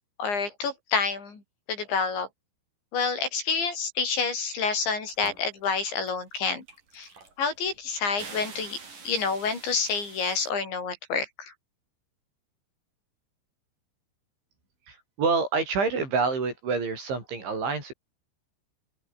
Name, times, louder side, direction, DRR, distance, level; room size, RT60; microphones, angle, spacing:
voice 1, 0.2-1.4 1.7-2.3 2.9-6.6 6.9-7.1 7.4-8.8 9.1-11.5, left 5 dB, 65° left, 8.9 m, -28 dB
sound 1, 5.1-5.7 6.0-10.5, right 4 dB, 45° right, 7.4 m, -46 dB
voice 2, 14.9-17.9, right 4 dB, 70° right, 10.5 m, -27 dB
open air
omnidirectional pair, 5.6 m